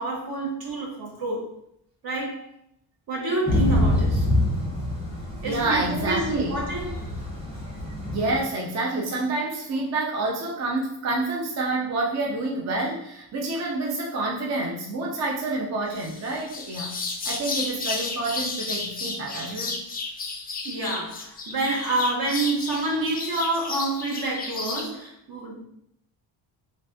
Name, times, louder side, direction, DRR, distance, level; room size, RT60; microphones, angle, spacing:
voice 1, 0.0-1.5 2.0-2.5 3.1-4.3 5.4-7.1 7.5-7.6 20.6-25.6, right 2 dB, 50° right, -2 dB, 1.2 m, -28 dB
Thunder / Rain, 3.5-8.4, left 1 dB, 15° right, 1.0 m, -26 dB
voice 2, 5.4-6.6 8.1-16.9 17.3-19.8, right 2 dB, 35° right, -1 dB, 0.6 m, -28 dB
sound 1, 16.0-24.9, left 3 dB, 20° left, 0.4 m, -32 dB
3.2 x 2.4 x 2.6 m, 0.72 s
cardioid pair, 100°, 46 cm